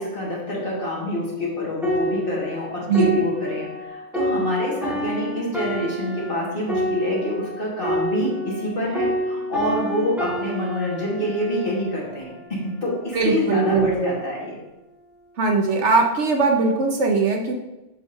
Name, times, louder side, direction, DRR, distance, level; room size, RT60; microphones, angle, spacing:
voice 1, 0.0-12.3 12.8-14.6, left 1 dB, 45° left, -5 dB, 1.8 m, -26 dB
sound 1, 1.8-8.7 8.9-12.5 13.2-13.4, equal, ahead, 1.8 m, -28 dB
voice 2, 2.9-3.2 13.1-14.2 15.4-17.5, right 3 dB, 65° right, 2 dB, 1.0 m, -20 dB
7.7 x 5.1 x 2.6 m, 0.98 s
omnidirectional pair, 1.3 m